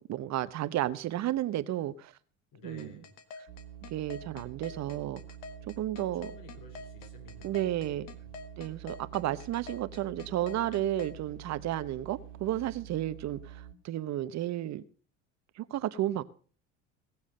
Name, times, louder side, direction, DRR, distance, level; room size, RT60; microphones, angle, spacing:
voice 1, 0.0-2.1 2.6-3.0 3.9-5.2 5.7-6.3 7.4-8.1 8.6-14.8 15.6-16.2, right 13 dB, 50° right, 0.9 m, -32 dB
voice 2, 2.5-3.1 6.2-8.3, left 4 dB, 60° left, 4.6 m, -53 dB
sound 1, 2.8-11.1, left 4 dB, 85° left, 1.7 m, -46 dB
sound 2, 3.5-13.7, right 10 dB, 75° right, 1.9 m, -48 dB
18.0 x 7.1 x 6.5 m
supercardioid pair, 100°, 36 cm